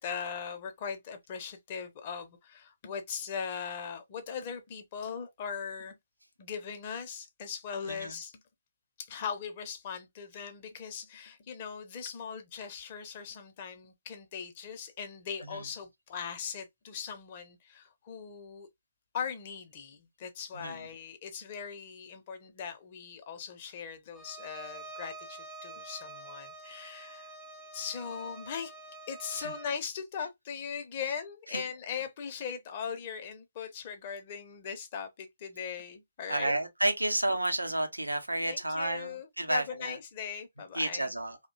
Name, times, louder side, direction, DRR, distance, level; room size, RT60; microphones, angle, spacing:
voice 1, 0.0-6.0 6.4-8.3 9.0-18.7 19.1-27.3 27.7-28.7 29.1-36.6 38.5-41.1, left 7 dB, 35° left, 0.6 m, -39 dB
Bowed string instrument, 24.1-29.8, right 2 dB, 10° right, 0.4 m, -47 dB
voice 2, 36.3-40.0 40.7-41.4, right 1 dB, 85° right, 0.6 m, -31 dB
2.6 x 2.1 x 2.4 m
figure-of-eight pair, 135°, 0 cm